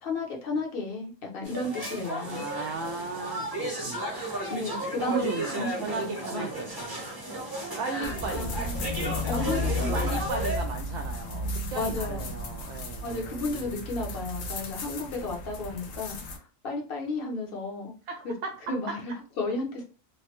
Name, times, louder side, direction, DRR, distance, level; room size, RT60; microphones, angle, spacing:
voice 1, 0.0-2.4 4.5-6.5 7.9-8.9 9.3-9.9 11.7-12.2 13.0-17.9 18.2-18.3 18.7-19.8, left 3 dB, 50° left, 0 dB, 0.9 m, -33 dB
sound 1, 1.4-10.6, right 1 dB, 20° right, 0.8 m, -34 dB
voice 2, 2.2-4.4 5.0-7.1 7.8-8.6 9.0-13.9 18.1-18.6, right 4 dB, 70° right, 3 dB, 0.8 m, -36 dB
sound 2, 8.0-16.4, left 2 dB, 90° left, 1.0 m, -34 dB
3.1 x 2.2 x 2.9 m, 0.36 s
omnidirectional pair, 1.3 m